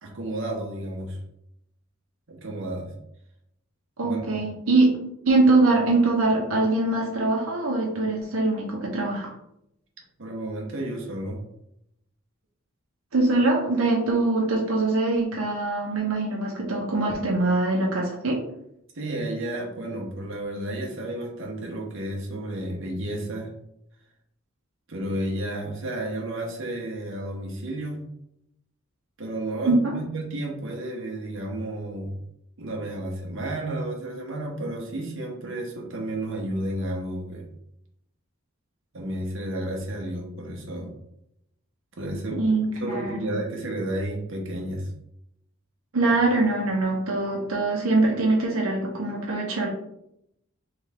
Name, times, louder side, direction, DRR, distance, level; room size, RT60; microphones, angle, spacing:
voice 1, 0.0-1.2 2.3-2.9 4.0-4.4 10.2-11.4 18.9-23.5 24.9-28.0 29.2-32.1 32.6-37.5 38.9-40.9 42.0-42.4 42.8-44.9, right 1 dB, 65° right, 0 dB, 1.1 m, -32 dB
voice 2, 4.0-5.0 5.2-9.3 13.1-18.4 29.7-29.9 42.3-43.4 45.9-49.7, right 2 dB, 85° right, -2 dB, 0.9 m, -23 dB
3.6 x 3.5 x 3.5 m, 0.78 s
head